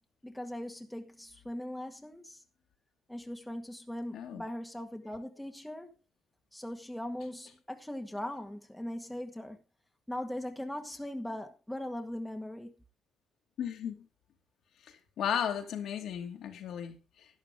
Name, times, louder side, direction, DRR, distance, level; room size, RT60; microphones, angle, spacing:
voice 1, 0.2-2.4 3.1-5.9 6.5-9.6 10.1-12.7, left 1 dB, 5° left, 1.8 m, -40 dB
voice 2, 13.6-14.1 15.2-17.3, left 8 dB, 70° left, 2.5 m, -35 dB
12.0 x 11.0 x 3.8 m
cardioid pair, 105°, 0 cm